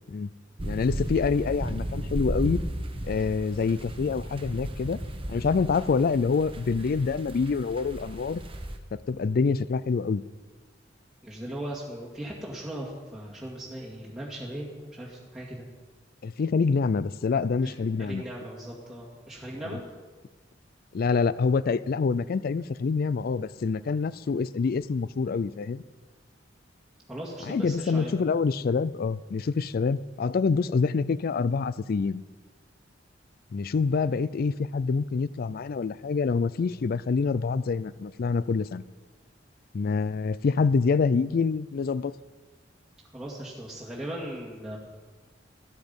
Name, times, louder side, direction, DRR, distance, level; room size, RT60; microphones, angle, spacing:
voice 1, 0.6-2.6 3.1-5.0 5.3-8.4 8.9-10.2 16.2-18.2 20.9-25.8 27.4-32.2 33.5-38.8 39.7-42.1, left 4 dB, 55° left, 18 dB, 0.4 m, -26 dB
sound 1, 0.6-8.8, right 1 dB, 30° right, 1.1 m, -35 dB
voice 2, 11.2-15.6 17.6-19.8 27.1-28.1 43.1-44.8, right 1 dB, 5° right, -6 dB, 2.1 m, -38 dB
14.0 x 13.0 x 5.3 m, 1.3 s
head